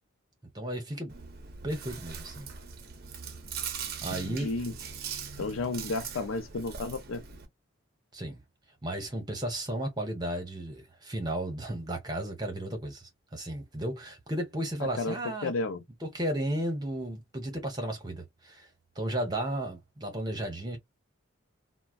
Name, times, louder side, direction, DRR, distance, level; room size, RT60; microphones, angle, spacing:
voice 1, 0.5-1.1 1.6-2.5 4.0-4.5 8.1-8.4 8.8-15.5 16.0-18.7 18.9-20.8, right 1 dB, 20° right, 1.0 m, -34 dB
Chewing mastication, 1.1-7.4, right 6 dB, 50° right, 0.6 m, -41 dB
voice 2, 4.1-4.7 5.4-7.2 15.0-15.2 15.4-15.8, left 3 dB, 85° left, 0.5 m, -32 dB
3.1 x 2.2 x 2.4 m
head